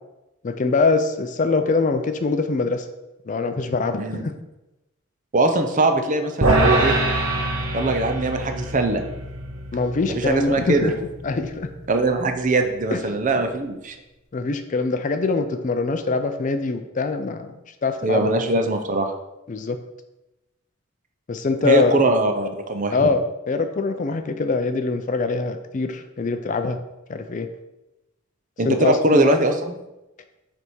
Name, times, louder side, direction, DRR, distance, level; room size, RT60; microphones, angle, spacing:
voice 1, 0.4-2.9 3.3-4.3 9.7-10.9 11.2-11.7 12.9-13.0 13.3-13.4 14.3-17.5 17.8-18.3 19.5-19.8 21.3-22.2 22.9-26.8 27.1-27.5 28.6-29.2, left 3 dB, 35° left, 8 dB, 0.4 m, -23 dB
voice 2, 5.3-7.0 7.7-9.0 10.1-10.9 11.9-14.0 18.0-19.1 21.6-23.1 28.6-29.7, right 2 dB, 35° right, 6 dB, 0.6 m, -21 dB
sound 1, 6.4-12.8, right 2 dB, 80° right, 0.9 m, -25 dB
6.7 x 3.5 x 4.5 m, 0.97 s
head